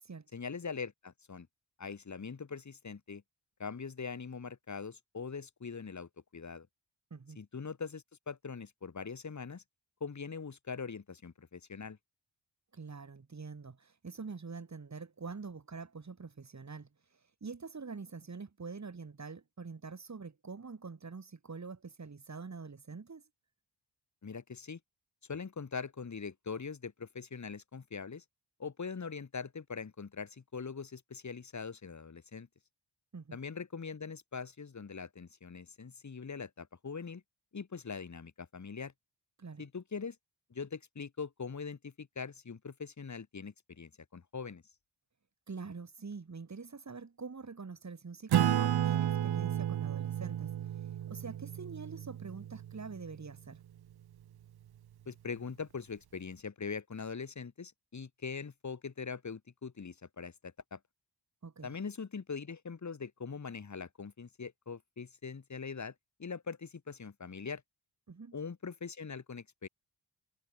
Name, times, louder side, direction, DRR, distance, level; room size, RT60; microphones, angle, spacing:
voice 1, 0.3-1.5 1.8-3.2 3.6-6.7 7.4-9.6 10.0-12.0 24.2-24.8 25.3-28.2 28.6-32.5 33.3-37.2 37.5-38.9 39.6-40.2 40.5-44.6 55.1-60.8 61.6-65.9 66.2-67.6 68.3-69.7, left 5 dB, 40° left, 2.4 m, -42 dB
voice 2, 7.1-7.4 12.7-16.9 17.4-23.2 33.1-33.4 39.4-39.6 45.5-50.5 51.1-53.6 61.4-61.7 68.1-68.3, right 4 dB, 40° right, 4.2 m, -45 dB
Acoustic guitar / Strum, 48.3-53.3, right 11 dB, 60° right, 0.7 m, -32 dB
wide cardioid pair, 95°, 44 cm